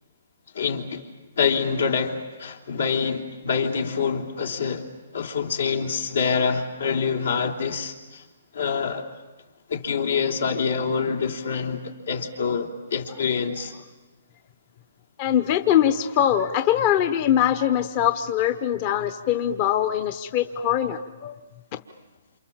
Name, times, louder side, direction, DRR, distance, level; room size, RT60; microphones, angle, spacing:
voice 1, 0.5-1.0 1.4-4.9 5.1-8.2 8.5-9.1 9.7-13.7, left 6 dB, 80° left, 4 dB, 3.0 m, -26 dB
voice 2, 15.2-21.3, left 10 dB, 30° left, 10 dB, 0.8 m, -22 dB
28.5 x 27.5 x 7.4 m, 1.2 s
hypercardioid pair, 160°, 0 cm